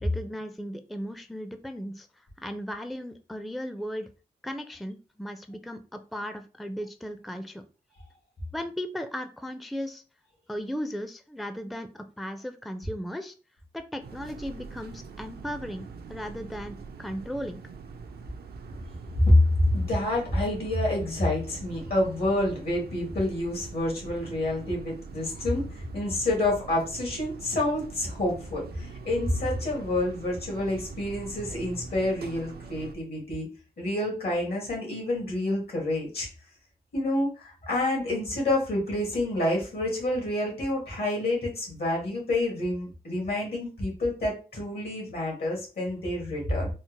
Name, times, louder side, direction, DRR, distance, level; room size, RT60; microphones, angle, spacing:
voice 1, 0.0-4.1 4.4-7.6 8.5-10.0 10.5-13.3 13.7-17.6, equal, ahead, 8 dB, 0.4 m, -36 dB
sound 1, 14.0-32.9, right 5 dB, 80° right, 0.5 m, -43 dB
voice 2, 19.2-33.5 33.8-36.3 36.9-46.7, left 1 dB, 80° left, -1 dB, 1.9 m, -28 dB
4.3 x 2.1 x 2.9 m, 0.35 s
cardioid pair, 60°, 16 cm